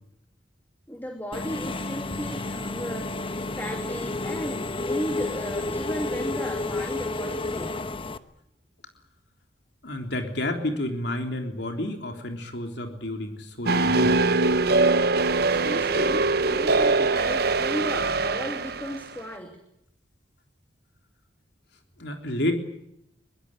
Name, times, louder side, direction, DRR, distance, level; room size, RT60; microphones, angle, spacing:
voice 1, 0.9-7.8 15.5-19.6, equal, 10° left, 4 dB, 2.8 m, -35 dB
Engine / Mechanisms, 1.3-8.2, left 2 dB, 30° left, 1.1 m, -31 dB
voice 2, 9.8-14.3 22.0-22.6, left 1 dB, 60° left, 5 dB, 3.6 m, -30 dB
sound 1, 13.7-19.0, right 3 dB, 55° right, 1.1 m, -22 dB
23.5 x 21.5 x 9.0 m, 0.78 s
head